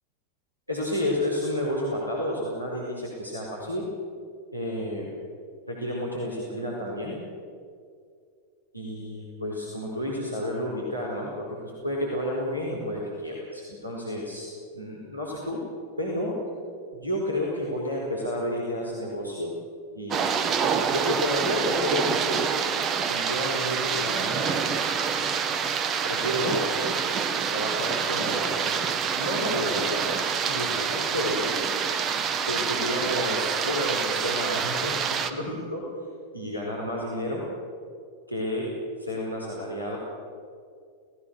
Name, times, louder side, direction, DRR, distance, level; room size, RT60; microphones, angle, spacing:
voice 1, 0.7-3.8 4.5-5.1 5.7-7.2 8.7-14.5 14.7-15.6 16.0-16.3 16.9-19.5 19.9-20.4 20.8-22.5 23.1-25.4 26.0-26.7 27.5-28.7 29.1-30.1 30.5-31.4 32.5-35.8 36.3-37.4 38.3-38.7 39.0-40.0, left 1 dB, 90° left, -4 dB, 4.6 m, -31 dB
sound 1, 20.1-35.3, right 6 dB, 30° right, 1.4 m, -27 dB
29.5 x 18.5 x 6.5 m, 2.3 s
figure-of-eight pair, 90°, 0 cm